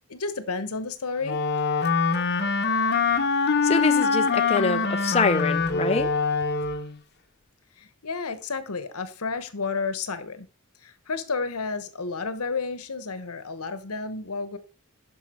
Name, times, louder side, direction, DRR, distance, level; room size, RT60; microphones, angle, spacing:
voice 1, 0.1-1.4 7.8-10.5 10.8-14.6, left 4 dB, 85° left, 1.1 m, -31 dB
Wind instrument woodwind instrument, 1.2-7.0, left 4 dB, 50° left, 0.9 m, -24 dB
voice 2, 3.6-6.1, left 4 dB, 30° left, 0.5 m, -25 dB
11.5 x 5.5 x 4.4 m
head